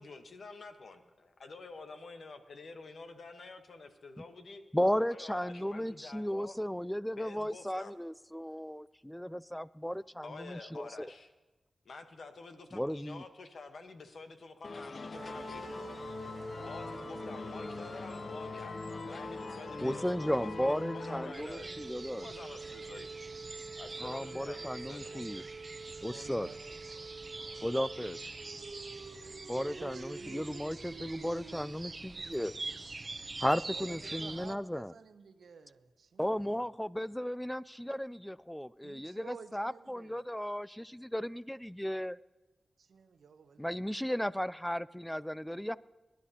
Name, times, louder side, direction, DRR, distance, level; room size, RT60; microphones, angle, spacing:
voice 1, 0.0-4.6 5.0-6.5 7.2-7.9 10.2-11.3 11.8-15.8 16.6-21.8 22.2-23.1 23.8-25.4, left 3 dB, 75° left, 1.1 m, -49 dB
voice 2, 4.7-11.1 12.7-13.2 19.8-22.3 24.0-25.4 26.0-26.5 27.6-28.2 29.5-32.5 33.4-34.9 36.2-42.2 43.6-45.8, equal, 5° left, 0.3 m, -35 dB
sound 1, 14.6-21.3, left 4 dB, 60° left, 0.5 m, -42 dB
sound 2, 15.1-32.9, right 4 dB, 65° right, 1.3 m, -47 dB
sound 3, 21.3-34.5, right 3 dB, 45° right, 0.6 m, -45 dB
voice 3, 26.0-26.8 29.6-30.5 33.7-36.6 38.8-40.2 42.8-43.6, right 5 dB, 90° right, 0.7 m, -52 dB
23.0 x 11.5 x 2.9 m
cardioid pair, 50°, 0 cm